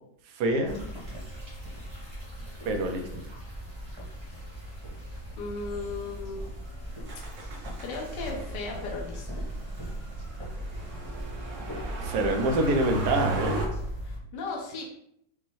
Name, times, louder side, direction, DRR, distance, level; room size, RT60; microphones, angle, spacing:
voice 1, 0.3-0.9 2.6-3.1 12.0-13.7, right 1 dB, 70° right, 4 dB, 1.0 m, -26 dB
sound 1, 0.6-14.2, equal, 20° right, 0.9 m, -39 dB
voice 2, 5.4-6.4 7.8-9.5 14.0-14.8, left 3 dB, 65° left, -1 dB, 1.4 m, -36 dB
Motor vehicle (road), 7.1-13.7, right 2 dB, 90° right, 0.6 m, -37 dB
5.2 x 2.2 x 3.1 m, 0.73 s
omnidirectional pair, 2.2 m